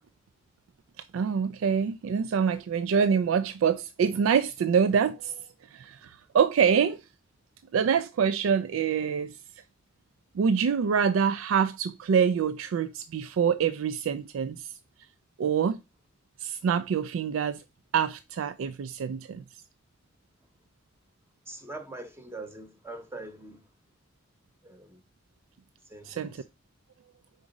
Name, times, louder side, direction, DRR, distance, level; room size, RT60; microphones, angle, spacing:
voice 1, 1.1-5.4 5.7-7.0 7.7-9.4 10.3-14.7 15.4-15.8 16.4-17.6 17.9-19.4 26.0-26.4, right 7 dB, 90° right, 0.3 m, -25 dB
voice 2, 21.5-23.6 24.6-25.0 25.9-26.4, right 2 dB, 15° right, 0.8 m, -43 dB
4.8 x 3.9 x 5.2 m
head